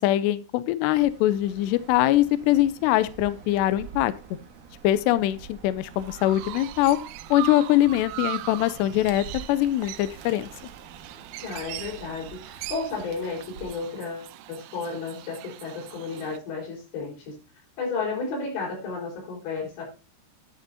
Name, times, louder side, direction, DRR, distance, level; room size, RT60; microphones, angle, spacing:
voice 1, 0.0-4.1 4.8-7.0 7.3-10.5, left 14 dB, 90° left, 14 dB, 2.4 m, -22 dB
Bird, 0.8-14.0, right 6 dB, 60° right, 2.2 m, -47 dB
Chirp tweet, 5.8-16.4, right 16 dB, 85° right, 3.3 m, -40 dB
voice 2, 11.4-17.4 17.8-19.8, left 4 dB, 60° left, -1 dB, 6.7 m, -33 dB
11.0 x 10.5 x 2.7 m, 0.32 s
omnidirectional pair, 5.8 m